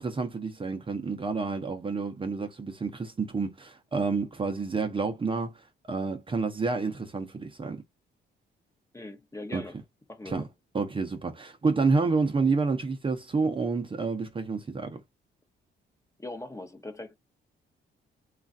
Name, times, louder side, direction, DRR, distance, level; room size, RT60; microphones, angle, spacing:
voice 1, 0.0-7.8 9.5-9.6 10.3-10.4 10.7-15.0, right 4 dB, 25° right, 0.7 m, -29 dB
voice 2, 8.9-9.8 10.1-10.5 16.2-17.2, left 2 dB, 15° left, 0.8 m, -41 dB
3.1 x 2.4 x 2.5 m
cardioid pair, 90°, 20 cm